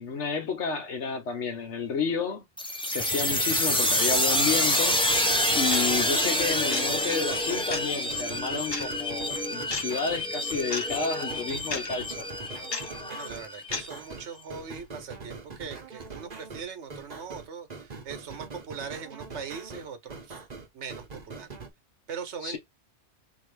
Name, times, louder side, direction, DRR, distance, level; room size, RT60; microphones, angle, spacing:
voice 1, 0.0-2.4 2.9-5.1 5.5-12.3 22.4-22.6, left 5 dB, 85° left, 1.4 m, -31 dB
sound 1, 2.6-14.0, left 1 dB, 5° left, 0.5 m, -27 dB
sound 2, 3.0-21.7, right 4 dB, 40° right, 1.0 m, -43 dB
sound 3, 4.7-4.8 5.7-5.8 6.7-6.8 7.7-7.9 8.7-8.9 9.7-9.8 10.7-10.8 11.7-11.9 12.7-12.9 13.7-13.9, left 4 dB, 60° left, 1.2 m, -32 dB
voice 2, 13.0-20.4 20.7-21.5 22.1-22.6, right 6 dB, 80° right, 1.2 m, -40 dB
3.8 x 3.0 x 3.3 m
omnidirectional pair, 1.2 m